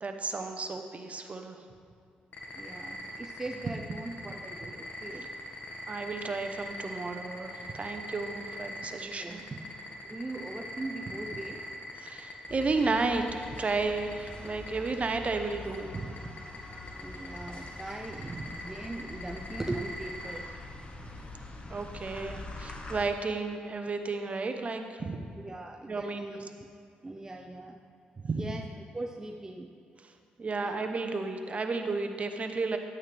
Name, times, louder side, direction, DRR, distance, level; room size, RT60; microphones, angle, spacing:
voice 1, 0.0-1.6 5.9-9.4 12.0-16.1 21.7-25.2 25.9-26.3 28.2-28.5 30.4-32.8, right 3 dB, 40° right, 6 dB, 0.9 m, -33 dB
sound 1, 2.3-20.4, left 1 dB, 50° left, 1.8 m, -42 dB
voice 2, 2.6-5.3 9.2-9.4 10.0-11.6 17.0-20.5 25.4-26.5 27.0-27.8 28.4-29.8 30.6-30.9, right 2 dB, 15° right, 3 dB, 0.6 m, -40 dB
sound 2, 12.5-23.1, left 2 dB, 30° left, 1.1 m, -45 dB
10.5 x 8.6 x 3.4 m, 2.5 s
supercardioid pair, 65°, 4 cm